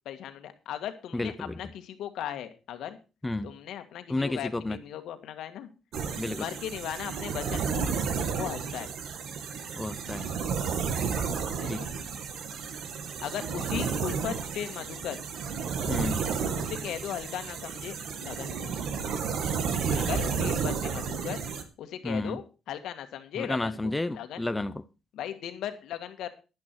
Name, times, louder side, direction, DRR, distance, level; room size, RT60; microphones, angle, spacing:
voice 1, 0.0-3.0 3.4-5.7 6.3-7.9 8.3-8.9 11.6-11.9 13.2-15.2 16.6-18.7 20.0-21.4 21.8-24.4 25.1-26.3, left 10 dB, 80° left, 8 dB, 1.7 m, -37 dB
voice 2, 1.1-1.6 3.2-3.5 4.1-4.8 6.2-6.4 9.7-10.2 11.7-11.8 15.9-16.2 22.0-22.4 23.4-24.8, left 2 dB, 15° left, 11 dB, 0.7 m, -31 dB
sound 1, 5.9-21.6, right 6 dB, 75° right, 1.8 m, -32 dB
11.0 x 10.5 x 4.6 m, 0.31 s
cardioid pair, 90°, 0 cm